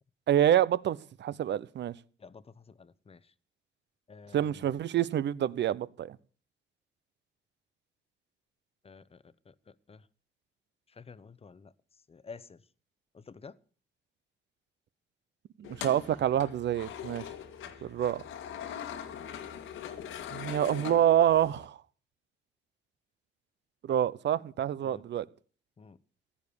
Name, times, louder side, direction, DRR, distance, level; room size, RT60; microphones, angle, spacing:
voice 1, 0.3-1.9 4.3-6.2 15.6-17.2 17.8-18.2 20.3-21.8 23.9-25.2, right 11 dB, 65° right, 0.9 m, -27 dB
voice 2, 2.8-3.2 4.1-4.6 8.8-9.2 9.9-10.0 11.0-11.7 12.1-12.6 13.1-13.5 24.9-25.0 25.8-26.0, left 5 dB, 30° left, 1.0 m, -49 dB
sound 1, 15.6-21.7, left 9 dB, 85° left, 2.0 m, -42 dB
16.0 x 9.8 x 7.0 m
cardioid pair, 90°, 20 cm